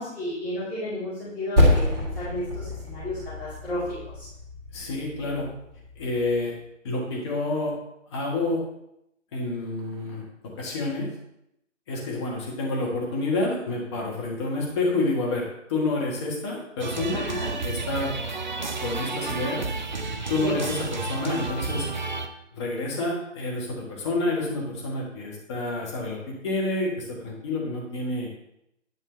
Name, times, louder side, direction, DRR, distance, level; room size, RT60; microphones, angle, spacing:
voice 1, 0.0-4.3 17.1-17.5 20.4-20.6, left 1 dB, 5° left, -18 dB, 3.1 m, -32 dB
Percussion, 1.6-6.4, left 1 dB, 15° right, 1.8 m, -26 dB
voice 2, 4.7-5.5 6.0-6.5 6.8-7.8 8.1-8.6 9.3-10.2 10.6-11.1 11.9-17.2 17.6-18.1 18.8-19.7 20.3-21.9 22.5-28.3, left 2 dB, 20° left, -3 dB, 1.5 m, -28 dB
sound 1, 16.8-22.3, right 3 dB, 40° right, 0.5 m, -31 dB
9.6 x 5.4 x 3.2 m, 0.81 s
figure-of-eight pair, 145°, 38 cm